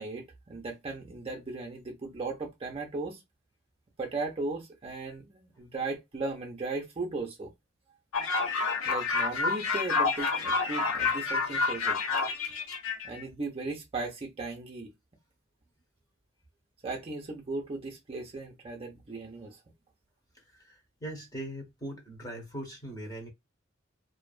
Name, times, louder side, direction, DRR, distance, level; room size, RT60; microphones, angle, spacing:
voice 1, 0.0-3.2 4.0-7.5 8.8-12.0 13.0-14.9 16.8-19.6, right 3 dB, 30° right, 0.5 m, -37 dB
sound 1, 8.1-13.2, left 4 dB, 85° left, 0.6 m, -29 dB
voice 2, 20.3-23.3, right 1 dB, 20° left, 0.9 m, -41 dB
2.5 x 2.3 x 2.3 m
head